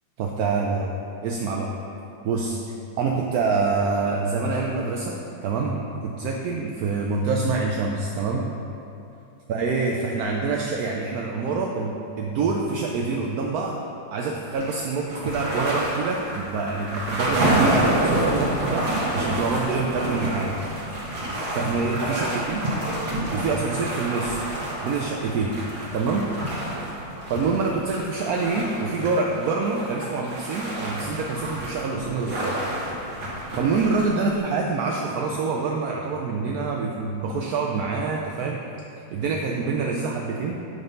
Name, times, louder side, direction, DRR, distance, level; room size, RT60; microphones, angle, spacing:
voice 1, 0.2-0.9 1.2-1.7 2.2-2.6 3.0-8.5 9.5-13.8 14.1-20.6 21.5-22.6 23.3-24.4 24.8-25.5 25.9-26.3 27.3-32.5 33.5-38.6 39.1-40.6, right 4 dB, 75° right, 0 dB, 0.8 m, -26 dB
sound 1, 14.5-34.3, right 1 dB, 55° right, 1.6 m, -28 dB
7.8 x 3.9 x 5.3 m, 2.8 s
omnidirectional pair, 2.0 m